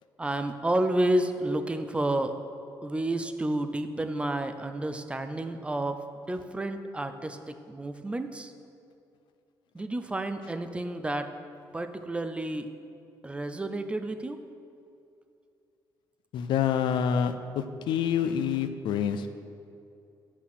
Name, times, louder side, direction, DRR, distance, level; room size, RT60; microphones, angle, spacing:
voice 1, 0.2-2.4 2.8-8.5 9.7-11.3 11.7-12.7 13.2-14.4, right 1 dB, 15° right, 8 dB, 0.5 m, -30 dB
voice 2, 16.3-17.3 17.9-19.3, left 8 dB, 80° left, 10 dB, 0.5 m, -26 dB
8.0 x 6.1 x 5.9 m, 2.6 s
cardioid pair, 115°, 8 cm